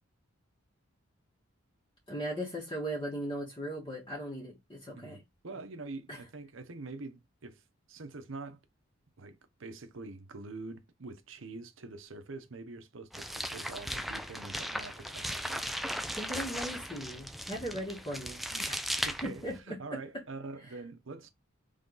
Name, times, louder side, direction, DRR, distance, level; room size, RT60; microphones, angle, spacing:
voice 1, 2.1-5.2 6.1-6.2 16.1-18.4 19.2-19.6 19.9-20.0, equal, 25° left, 1.8 m, -38 dB
voice 2, 4.9-7.6 7.9-8.6 9.2-15.7 18.5-21.3, right 3 dB, 70° right, 0.9 m, -45 dB
sound 1, 13.1-19.6, equal, ahead, 0.3 m, -37 dB
3.8 x 3.5 x 3.9 m
head